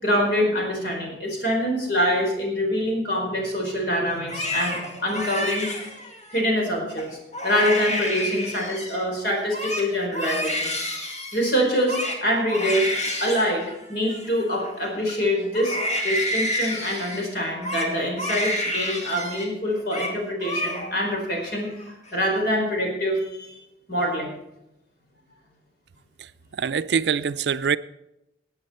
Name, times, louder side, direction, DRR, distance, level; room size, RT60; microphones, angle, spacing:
voice 1, 0.0-5.7 6.3-7.2 7.4-10.7 11.3-12.9 13.2-15.8 16.0-21.7 22.1-23.6 23.9-24.3, equal, 60° left, 4.6 m, -25 dB
Crying sobbing, 4.1-6.4 6.9-7.1 7.3-9.0 9.4-15.1 15.5-19.5 19.7-20.1 20.4-21.1 21.5-22.1, left 1 dB, 40° left, 2.3 m, -30 dB
voice 2, 26.6-27.8, right 6 dB, 70° right, 0.4 m, -23 dB
18.0 x 8.7 x 4.3 m
head